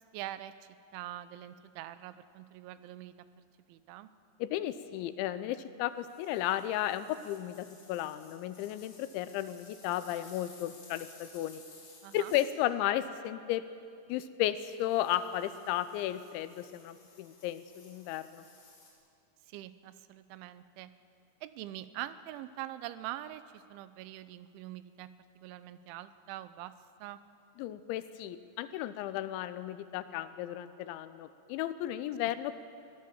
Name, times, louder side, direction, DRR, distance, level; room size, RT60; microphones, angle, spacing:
voice 1, 0.0-3.1 3.7-4.1 12.0-12.3 19.5-20.9 21.4-25.1 25.4-26.7 27.0-27.2, right 13 dB, 90° right, 13 dB, 3.1 m, -44 dB
voice 2, 4.4-11.6 12.1-13.6 14.1-18.4 27.6-32.6, left 12 dB, 85° left, 12 dB, 3.1 m, -34 dB
sound 1, 6.0-12.5 14.6-18.9, left 3 dB, 55° left, 5.9 m, -57 dB
23.0 x 16.5 x 7.2 m, 2.4 s
omnidirectional pair, 5.3 m